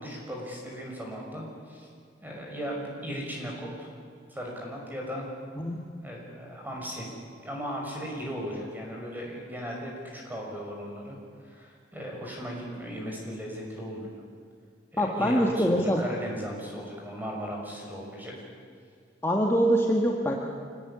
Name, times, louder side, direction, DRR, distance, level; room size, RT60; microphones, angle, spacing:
voice 1, 0.0-1.9 2.2-3.9 4.3-5.3 6.0-7.1 7.4-11.2 11.4-14.1 14.9-18.3, equal, 10° right, -1 dB, 6.1 m, -37 dB
voice 2, 15.0-16.0 19.2-20.4, equal, 15° left, -1 dB, 1.7 m, -24 dB
25.5 x 18.5 x 10.0 m, 2.2 s
head